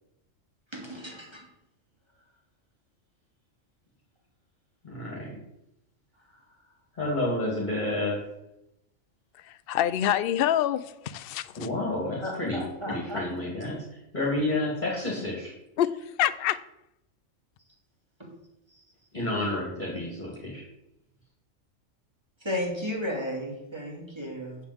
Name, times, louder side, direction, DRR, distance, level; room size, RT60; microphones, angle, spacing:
voice 1, 0.7-1.4 12.2-13.2 18.2-18.3 22.4-24.6, left 1 dB, 20° right, -1 dB, 2.7 m, -34 dB
voice 2, 4.8-5.3 7.0-8.2 11.6-13.8 14.1-15.5 19.1-20.6, left 2 dB, 35° left, -4 dB, 2.5 m, -30 dB
voice 3, 9.3-11.7 15.8-16.6, left 11 dB, 60° left, 14 dB, 0.7 m, -27 dB
7.3 x 7.1 x 8.0 m, 0.85 s
omnidirectional pair, 1.4 m